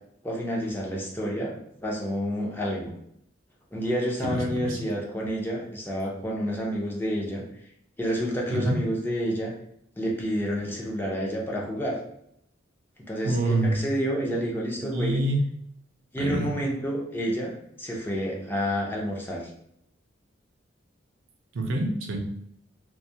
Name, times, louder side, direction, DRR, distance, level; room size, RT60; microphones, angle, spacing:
voice 1, 0.2-1.6 1.8-2.9 3.7-7.4 8.0-9.5 10.0-12.0 13.1-15.3 16.1-17.5 17.8-19.4, equal, 10° left, -3 dB, 0.5 m, -29 dB
voice 2, 4.3-4.8 8.5-8.8 13.2-13.8 14.8-15.5 16.2-16.5 21.5-22.2, right 1 dB, 90° right, 2 dB, 0.5 m, -26 dB
2.3 x 2.1 x 2.7 m, 0.73 s
head